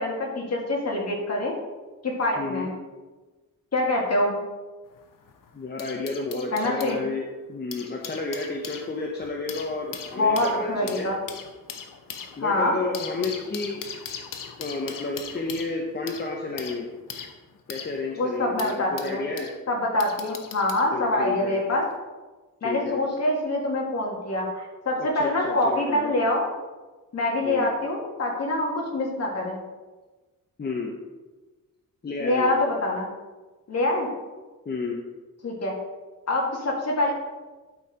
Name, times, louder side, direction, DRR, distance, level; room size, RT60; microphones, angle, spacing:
voice 1, 0.0-1.6 2.0-2.7 3.7-4.3 6.5-7.0 10.2-11.2 12.4-12.8 18.2-19.3 19.7-21.8 22.6-26.5 27.1-29.6 32.2-33.1 33.7-34.1 35.4-35.7 36.3-37.1, left 1 dB, 50° left, -1 dB, 2.2 m, -25 dB
voice 2, 2.4-2.7 5.5-11.1 12.4-13.8 14.6-16.9 17.7-19.5 20.9-21.5 22.6-23.0 25.0-26.1 27.4-27.8 30.6-30.9 32.0-32.5 34.6-35.0, left 3 dB, 30° left, 0 dB, 0.9 m, -31 dB
sound 1, 4.9-7.0 7.5-19.6 20.0-20.9 21.8-22.0, left 7 dB, 70° left, 0.9 m, -40 dB
12.0 x 4.5 x 5.1 m, 1.2 s
wide cardioid pair, 145°, 33 cm